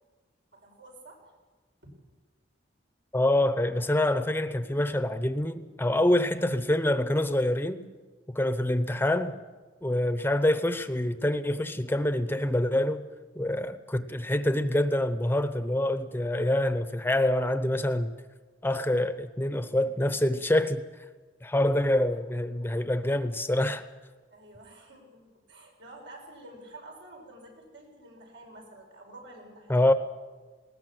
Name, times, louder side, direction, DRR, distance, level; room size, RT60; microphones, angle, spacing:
voice 1, 0.5-1.3 1.8-1.9 24.3-29.9, right 2 dB, 85° right, 6.4 m, -49 dB
voice 2, 3.1-7.9 8.3-9.4 9.8-13.1 13.4-18.1 18.6-20.8 21.4-23.8 29.7-29.9, left 1 dB, 10° left, 0.8 m, -26 dB
20.0 x 19.0 x 7.8 m
head